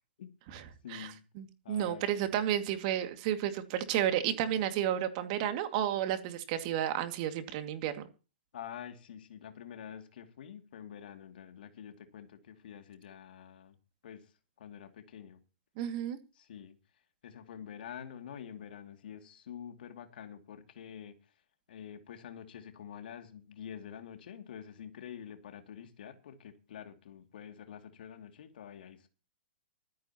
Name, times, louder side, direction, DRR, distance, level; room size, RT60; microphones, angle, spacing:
voice 1, 0.8-1.2 1.6-2.3 8.5-13.8 14.0-14.3 14.6-15.4 16.3-16.8 17.2-21.2 21.7-29.1, left 9 dB, 60° left, 2.6 m, -47 dB
voice 2, 1.4-7.9 15.8-16.2, right 11 dB, 45° right, 2.3 m, -32 dB
24.0 x 9.3 x 3.0 m
figure-of-eight pair, 115°, 6 cm